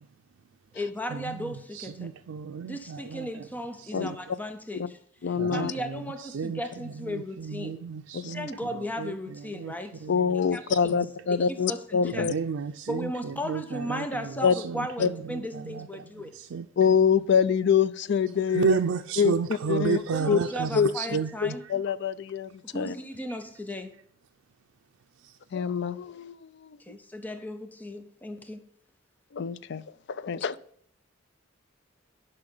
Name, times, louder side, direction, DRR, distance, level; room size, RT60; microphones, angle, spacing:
voice 1, 0.7-2.1 2.7-5.0 5.5-7.8 8.3-10.1 10.5-10.6 11.3-12.3 12.9-16.3 20.0-21.6 22.6-23.9 26.9-28.7, equal, 10° left, 0.6 m, -36 dB
voice 2, 1.3-3.3 3.9-4.2 5.4-5.7 6.3-6.6 7.1-8.5 9.0-9.1 9.6-9.7 10.0-10.3 12.1-13.1 13.4-14.1 14.6-15.8 16.5-16.7 18.5-21.5, right 5 dB, 90° right, 0.4 m, -31 dB
voice 3, 5.2-5.7 8.1-8.3 10.1-12.3 14.4-14.5 15.0-15.1 16.8-18.8 19.2-20.0 20.3-20.4 20.7-20.9 21.4-22.9 25.5-27.0 29.3-29.8 30.1-30.6, left 7 dB, 60° left, 0.4 m, -25 dB
11.0 x 5.6 x 3.9 m
head